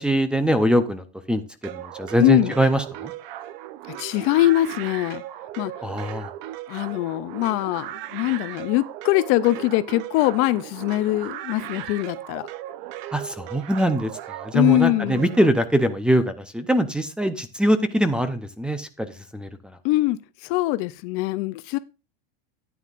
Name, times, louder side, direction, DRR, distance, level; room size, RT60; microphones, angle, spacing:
voice 1, 0.0-3.1 5.8-6.3 13.1-19.8, right 1 dB, 5° right, 0.6 m, -23 dB
sound 1, 1.6-15.5, right 13 dB, 60° right, 0.8 m, -37 dB
voice 2, 2.2-2.5 3.9-5.2 5.6-5.7 6.7-12.5 14.5-15.2 19.8-21.8, left 16 dB, 45° left, 0.5 m, -22 dB
13.0 x 9.3 x 2.5 m
supercardioid pair, 150°, 31 cm